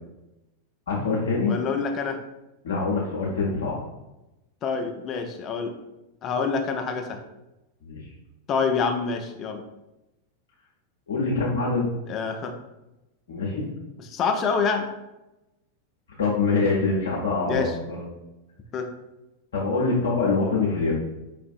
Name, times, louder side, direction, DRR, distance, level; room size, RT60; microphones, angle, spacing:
voice 1, 0.9-1.5 2.6-3.8 7.8-8.0 11.1-11.9 13.3-13.7 16.2-18.1 19.5-20.9, left 3 dB, 60° left, -6 dB, 0.7 m, -24 dB
voice 2, 1.5-2.2 4.6-5.8 6.2-7.2 8.5-9.6 12.1-12.5 14.0-14.9 17.5-17.7 18.7-18.9, left 5 dB, 30° left, 5 dB, 0.4 m, -26 dB
4.8 x 2.5 x 2.4 m, 0.95 s
figure-of-eight pair, 90°, 0 cm